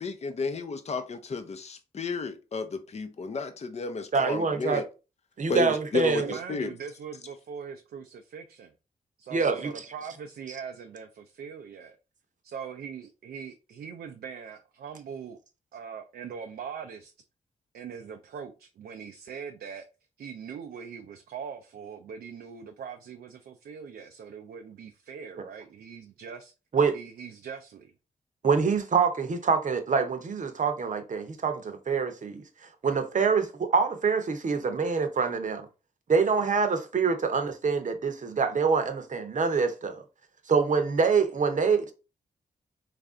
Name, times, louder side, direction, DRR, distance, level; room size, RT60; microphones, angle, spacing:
voice 1, 0.0-4.8 5.5-6.7, left 4 dB, 45° left, 0.6 m, -32 dB
voice 2, 4.1-4.8 5.4-6.4 9.3-9.7 25.4-25.5 26.7-27.0 28.4-35.7 36.1-40.0 40.5-41.9, right 5 dB, 50° right, 0.8 m, -25 dB
voice 3, 6.1-8.7 9.2-12.0 12.4-15.4 15.7-17.1 17.7-19.9 20.2-26.5 26.9-27.9, right 7 dB, 75° right, 0.4 m, -41 dB
3.3 x 2.5 x 3.6 m
cardioid pair, 60°, 16 cm